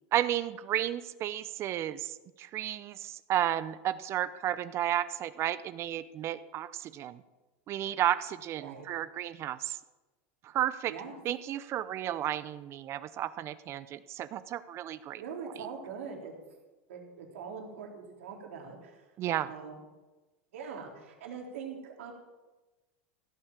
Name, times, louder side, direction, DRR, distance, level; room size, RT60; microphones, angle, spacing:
voice 1, 0.1-7.2 7.7-9.8 10.4-10.9 11.2-15.2 19.2-19.5, right 12 dB, 40° right, 15 dB, 0.6 m, -33 dB
voice 2, 10.9-11.2 15.2-16.3 16.9-19.1 19.5-19.8 20.5-22.1, right 6 dB, 85° right, 1 dB, 3.7 m, -42 dB
16.0 x 8.7 x 7.4 m, 1.2 s
supercardioid pair, 120°, 7 cm